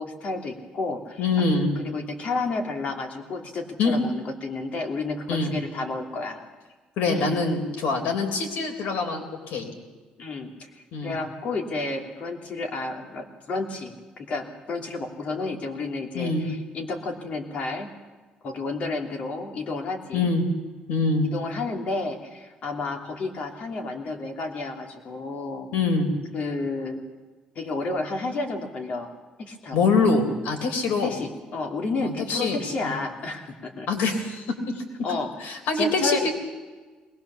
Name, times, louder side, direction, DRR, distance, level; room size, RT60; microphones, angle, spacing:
voice 1, 0.0-1.2 1.7-6.4 7.1-7.3 10.2-17.9 18.4-20.3 21.3-25.7 26.3-27.0 27.5-29.1 29.4-29.9 31.0-33.9 35.0-35.3 35.7-36.3, left 3 dB, 50° left, 3 dB, 3.0 m, -31 dB
voice 2, 1.2-1.7 3.8-4.0 5.3-5.5 7.0-9.7 10.9-11.2 16.1-16.5 20.1-20.4 20.9-21.3 25.7-26.1 29.7-31.1 32.0-32.9 33.9-34.8 35.4-36.3, left 3 dB, 85° left, 3 dB, 3.9 m, -24 dB
21.5 x 19.5 x 7.1 m, 1.3 s
cardioid pair, 145°, 3 cm